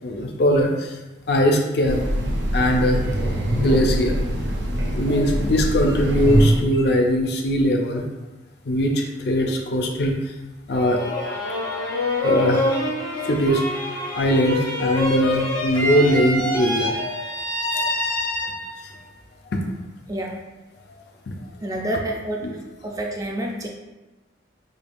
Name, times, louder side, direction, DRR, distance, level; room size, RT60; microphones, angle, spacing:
voice 1, 0.0-1.0 1.3-2.0 2.5-3.0 3.5-4.2 4.9-8.0 8.7-10.3 10.7-11.3 11.8-11.9 12.2-12.7 13.2-13.6 14.1-17.3 17.7-17.9 19.5-19.6 21.3-21.4 22.4-22.5, equal, 55° left, 2 dB, 0.5 m, -21 dB
Train, 1.8-6.8, equal, 60° right, 0.7 m, -23 dB
sound 1, 10.7-18.9, left 1 dB, 75° left, 1.0 m, -26 dB
voice 2, 21.6-22.5 22.8-23.7, right 1 dB, 20° right, 1 dB, 0.4 m, -28 dB
5.1 x 2.3 x 2.5 m, 1.1 s
head